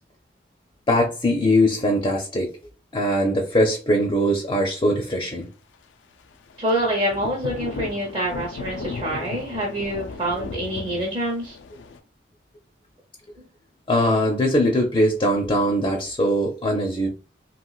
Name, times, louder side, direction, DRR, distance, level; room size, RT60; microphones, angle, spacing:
voice 1, 0.9-2.5 2.9-5.5 13.9-17.1, equal, 25° left, 0.5 m, -21 dB
Thunder / Rain, 6.5-12.0, left 4 dB, 85° left, 0.4 m, -35 dB
voice 2, 6.6-11.6, right 1 dB, 25° right, 0.7 m, -26 dB
3.0 x 2.8 x 2.3 m
head